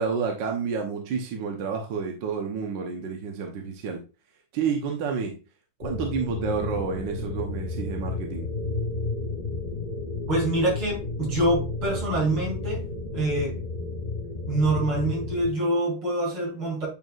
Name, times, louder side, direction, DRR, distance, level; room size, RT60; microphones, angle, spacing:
voice 1, 0.0-4.0 4.5-5.4 5.8-8.5, right 5 dB, 65° right, 1.6 m, -29 dB
sound 1, 5.8-15.5, left 3 dB, 85° left, 0.4 m, -32 dB
voice 2, 10.3-12.9 13.1-13.6 14.5-16.9, right 1 dB, 85° right, 4.1 m, -25 dB
9.1 x 4.6 x 2.5 m
omnidirectional pair, 2.3 m